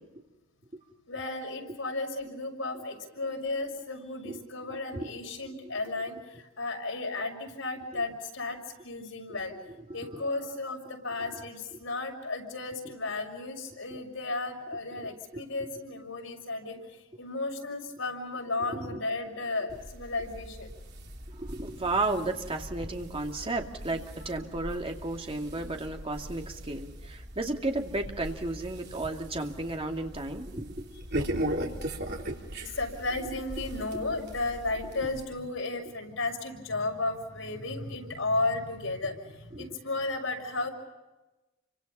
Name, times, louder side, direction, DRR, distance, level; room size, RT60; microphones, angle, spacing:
voice 1, 1.1-8.6 8.8-9.5 9.9-20.7 23.9-24.0 24.3-24.4 25.3-25.8 31.2-31.7 32.0-40.7, left 2 dB, 85° left, 2 dB, 6.3 m, -34 dB
voice 2, 9.9-10.2 11.2-11.3 12.8-12.9 14.9-15.4 18.7-19.0 21.3-31.0 33.8-34.0 35.0-35.1 39.5-39.8, right 2 dB, 30° right, 3 dB, 2.5 m, -34 dB
sound 1, 19.7-35.2, right 1 dB, 55° right, 3.4 m, -39 dB
30.0 x 25.5 x 5.6 m, 1.1 s
head